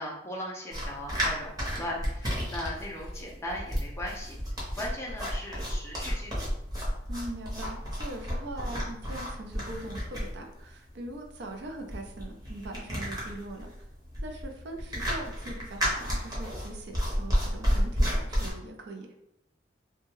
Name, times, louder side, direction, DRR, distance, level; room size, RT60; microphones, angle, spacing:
voice 1, 0.0-4.4 4.7-6.5, left 1 dB, 15° left, -3 dB, 0.4 m, -38 dB
sound 1, 0.7-18.5, equal, 20° right, 0.8 m, -31 dB
voice 2, 7.1-13.9 14.2-19.1, right 1 dB, 65° right, 3 dB, 0.4 m, -41 dB
2.6 x 2.2 x 3.0 m, 0.80 s
head